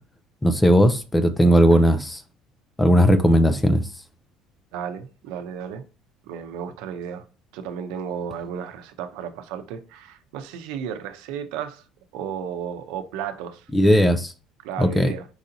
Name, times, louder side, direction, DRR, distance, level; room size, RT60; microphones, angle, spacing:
voice 1, 0.4-2.2 2.8-3.9 13.7-14.3 14.8-15.1, equal, 10° left, 0.4 m, -17 dB
voice 2, 4.7-5.8 6.3-7.2 7.5-11.8 12.1-13.7 14.6-15.3, right 8 dB, 80° right, 0.7 m, -33 dB
4.8 x 2.7 x 3.9 m
cardioid pair, 160°, 0 cm